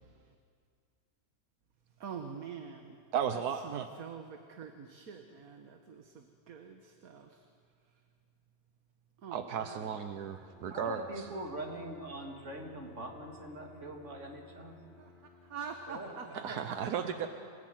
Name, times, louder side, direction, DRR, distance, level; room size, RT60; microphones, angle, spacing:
voice 1, 2.0-3.0 3.3-7.3 9.2-10.0 15.0-15.1 15.5-17.0, right 6 dB, 65° right, 5 dB, 1.8 m, -45 dB
voice 2, 3.1-3.9 9.3-11.2 16.4-17.3, right 8 dB, 85° right, 8 dB, 1.4 m, -35 dB
Bowed string instrument, 10.2-16.0, left 3 dB, ahead, 5.1 m, -58 dB
voice 3, 10.7-14.8 15.9-16.1 16.5-16.6, right 1 dB, 50° right, 1 dB, 3.4 m, -42 dB
26.5 x 18.5 x 9.4 m, 2.2 s
omnidirectional pair, 1.6 m